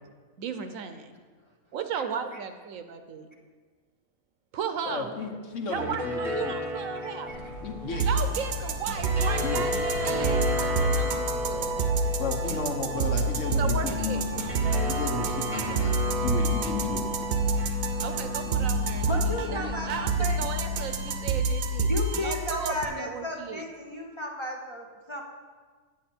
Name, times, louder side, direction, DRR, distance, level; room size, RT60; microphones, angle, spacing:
voice 1, 0.4-1.1 1.7-3.3 4.5-5.1 5.7-7.3 8.0-12.0 13.6-14.2 18.0-21.9 22.2-23.6, right 6 dB, 70° right, 8 dB, 1.0 m, -35 dB
voice 2, 4.9-6.0 6.2-6.5 7.6-8.1 9.4-9.6 12.2-15.9 16.2-17.1, left 4 dB, 60° left, 4 dB, 1.2 m, -33 dB
sound 1, 5.5-20.7, equal, 25° right, 0.9 m, -34 dB
voice 3, 7.0-7.4 12.0-12.1 19.1-20.5 21.9-25.2, left 1 dB, 25° left, -1 dB, 0.7 m, -34 dB
sound 2, 7.3-21.3, left 5 dB, 80° left, 1.4 m, -39 dB
sound 3, 7.9-22.8, right 3 dB, 90° right, 1.3 m, -28 dB
9.8 x 7.7 x 4.3 m, 1.5 s
omnidirectional pair, 1.5 m